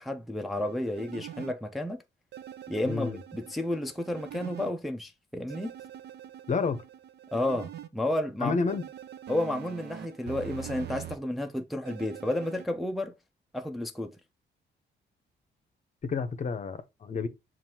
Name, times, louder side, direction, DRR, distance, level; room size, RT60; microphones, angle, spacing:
voice 1, 0.0-2.0 2.7-5.7 7.3-8.6 9.3-13.1 13.5-14.1, left 1 dB, ahead, 0.5 m, -31 dB
sound 1, 0.5-1.5 2.3-4.7 5.5-7.9 8.7-11.2 11.9-12.7, right 11 dB, 60° right, 0.5 m, -44 dB
voice 2, 2.8-3.2 6.5-6.8 8.4-8.8 16.0-17.3, left 4 dB, 40° left, 0.7 m, -30 dB
7.2 x 2.5 x 2.8 m
cardioid pair, 95°, 19 cm